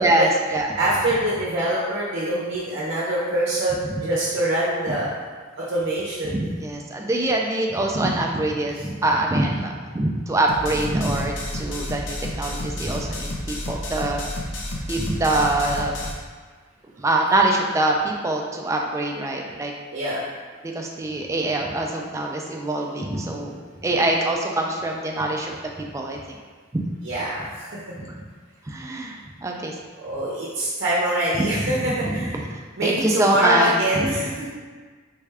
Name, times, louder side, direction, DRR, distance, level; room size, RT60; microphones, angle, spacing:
voice 1, 0.0-0.7 4.9-5.0 6.2-14.2 14.9-15.9 17.0-19.7 20.6-26.4 26.7-26.8 28.0-28.2 28.7-29.8 31.6-31.7 32.2-32.3 32.8-34.1, right 2 dB, 15° right, 0 dB, 0.3 m, -24 dB
voice 2, 0.8-5.1 5.6-6.4 19.9-20.3 27.0-27.7 30.0-32.4 32.8-34.5, right 1 dB, 65° right, -7 dB, 0.6 m, -24 dB
sound 1, 10.5-16.1, left 1 dB, 65° left, 0.5 m, -31 dB
3.5 x 2.2 x 3.3 m, 1.5 s
head